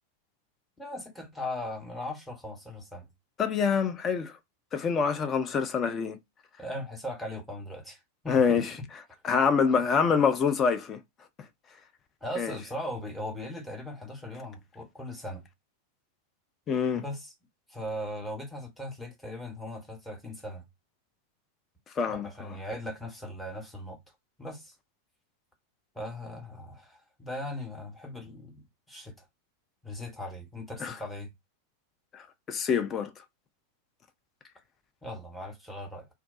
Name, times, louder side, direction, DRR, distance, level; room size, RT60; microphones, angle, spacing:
voice 1, 0.8-3.1 6.6-8.6 12.2-15.4 16.9-17.3 17.7-20.6 22.1-24.0 24.4-24.7 25.9-29.2 29.8-31.3 35.0-36.1, left 1 dB, 5° left, 1.0 m, -39 dB
voice 2, 3.4-4.4 4.7-6.2 8.3-8.7 9.2-11.0 12.4-12.6 16.7-17.0 22.0-22.5 30.8-30.9 32.1-33.1, left 6 dB, 25° left, 0.4 m, -26 dB
2.3 x 2.2 x 2.4 m
figure-of-eight pair, 90°, 0 cm